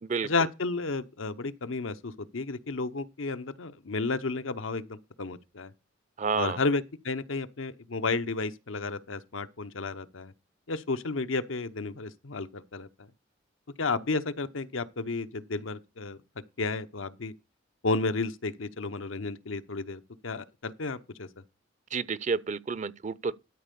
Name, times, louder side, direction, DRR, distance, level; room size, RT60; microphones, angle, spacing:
voice 1, 0.2-5.7 6.3-10.3 10.7-13.1 13.8-16.2 16.6-17.3 17.8-21.3, left 3 dB, 90° left, 0.9 m, -32 dB
voice 2, 6.2-6.6 21.9-23.3, right 5 dB, 40° right, 0.5 m, -30 dB
12.5 x 4.6 x 6.8 m
head